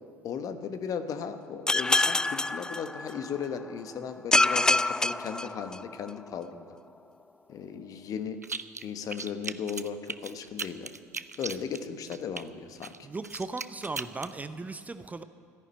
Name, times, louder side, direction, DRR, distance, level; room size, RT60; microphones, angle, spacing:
voice 1, 0.2-6.8 7.5-8.4 8.8-10.9 11.4-12.9, left 7 dB, 45° left, 9 dB, 1.2 m, -36 dB
sound 1, 1.7-3.4 4.3-6.1, left 2 dB, 10° left, 0.3 m, -26 dB
sound 2, 8.4-8.8 9.1-12.4 12.8-14.3, right 4 dB, 90° right, 0.4 m, -38 dB
voice 2, 13.0-15.2, right 3 dB, 20° right, 11 dB, 0.7 m, -37 dB
13.5 x 11.0 x 9.1 m, 2.3 s
figure-of-eight pair, 60°, 9 cm